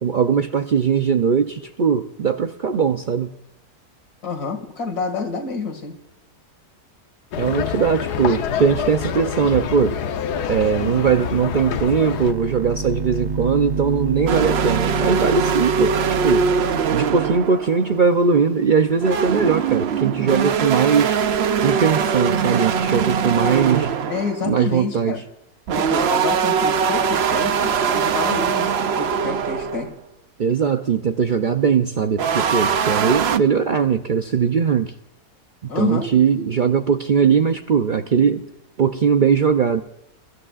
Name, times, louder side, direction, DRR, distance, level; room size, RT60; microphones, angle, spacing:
voice 1, 0.0-3.3 7.4-10.0 10.5-21.2 21.6-23.9 24.4-25.2 30.4-34.9 35.6-38.5 38.8-39.8, right 6 dB, 85° right, 6 dB, 0.4 m, -20 dB
voice 2, 4.2-6.0 24.1-25.2 25.7-29.9 35.7-36.5, left 4 dB, 75° left, 3 dB, 2.8 m, -28 dB
sound 1, 7.3-12.3, left 8 dB, 90° left, 1.4 m, -26 dB
sound 2, 12.1-17.5, right 4 dB, 20° right, 0.7 m, -28 dB
sound 3, 14.3-18.1 18.8-24.4 25.7-29.9 32.2-33.4, right 6 dB, 55° right, 0.7 m, -22 dB
28.0 x 13.5 x 2.5 m, 0.87 s
omnidirectional pair, 1.7 m